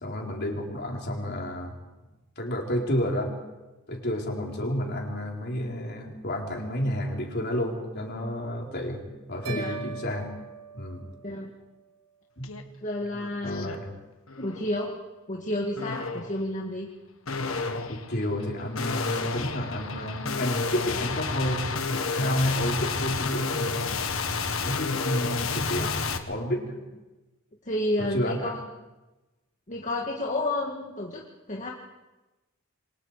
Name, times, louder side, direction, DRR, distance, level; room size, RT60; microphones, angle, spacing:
voice 1, 0.0-1.8 2.4-3.3 3.9-9.0 9.3-10.3 10.7-11.0 12.4-12.5 13.4-13.9 17.9-23.8 24.6-26.8 28.0-28.6, equal, 50° left, 0 dB, 4.3 m, -30 dB
sound 1, 9.4-11.7, right 5 dB, 70° right, 4.1 m, -40 dB
sound 2, 12.4-12.6 13.0-13.8 14.3-14.7 15.8-16.4 17.3-26.2, left 4 dB, 75° left, 1.7 m, -31 dB
voice 2, 12.8-13.7 14.4-14.9 15.3-16.9 25.8-26.0 27.6-28.6 29.7-31.2 31.5-31.7, left 1 dB, 35° left, -2 dB, 2.1 m, -30 dB
28.0 x 24.0 x 5.0 m, 1.1 s
head